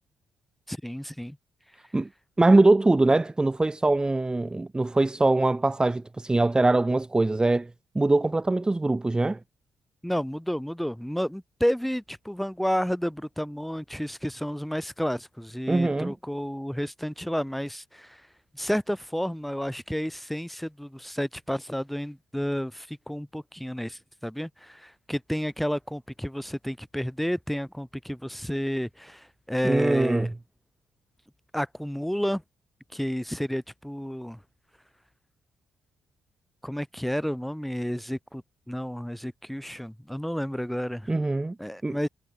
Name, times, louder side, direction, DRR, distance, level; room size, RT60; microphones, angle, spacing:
voice 1, 0.7-1.4 10.0-18.2 18.5-30.3 31.5-32.4 32.9-34.4 36.6-38.4 38.7-41.1 41.6-42.1, equal, ahead, 4.3 m, -31 dB
voice 2, 2.4-7.7 7.9-9.4 15.7-16.1 29.6-30.3 41.1-41.6 41.8-42.0, right 2 dB, 20° right, 0.7 m, -22 dB
hypercardioid pair, 45°, 4 cm